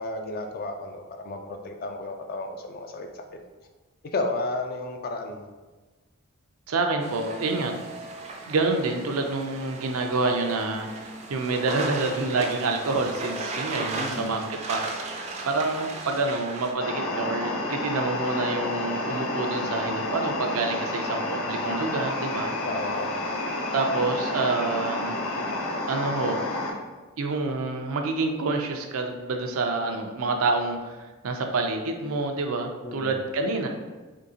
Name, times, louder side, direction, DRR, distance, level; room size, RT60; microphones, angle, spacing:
voice 1, 0.0-3.2 4.0-5.5 14.0-14.3 22.6-23.3 32.8-33.2, left 2 dB, 45° left, 4 dB, 0.4 m, -33 dB
voice 2, 6.7-7.7 8.5-22.5 23.7-25.2 25.9-26.4 27.2-31.0 31.2-33.7, right 3 dB, 85° right, 4 dB, 0.5 m, -27 dB
sound 1, 7.0-16.7, right 2 dB, 30° right, 0.4 m, -36 dB
sound 2, 16.8-26.7, left 2 dB, 90° left, 0.7 m, -30 dB
3.6 x 3.6 x 2.7 m, 1.2 s
head